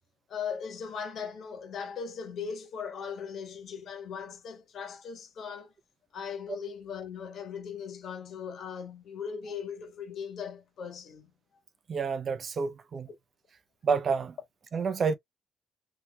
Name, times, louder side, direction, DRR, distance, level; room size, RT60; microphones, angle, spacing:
voice 1, 0.3-5.7 6.1-11.3 14.9-15.0, left 6 dB, 65° left, 1.4 m, -39 dB
voice 2, 11.9-13.1 13.8-14.3 14.7-15.2, right 5 dB, 50° right, 0.6 m, -29 dB
3.3 x 2.9 x 2.3 m
cardioid pair, 90°, 0 cm